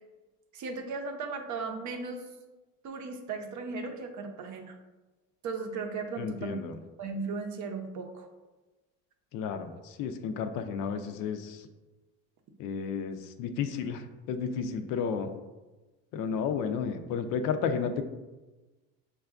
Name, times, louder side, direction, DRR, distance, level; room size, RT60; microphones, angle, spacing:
voice 1, 0.5-2.2 2.8-4.7 5.4-6.6 7.0-8.3, right 4 dB, 50° right, 4 dB, 0.6 m, -36 dB
voice 2, 6.2-6.8 9.3-11.6 12.6-15.3 16.1-18.0, left 6 dB, 60° left, 8 dB, 0.4 m, -32 dB
6.0 x 2.3 x 2.4 m, 1.2 s
supercardioid pair, 100°, 37 cm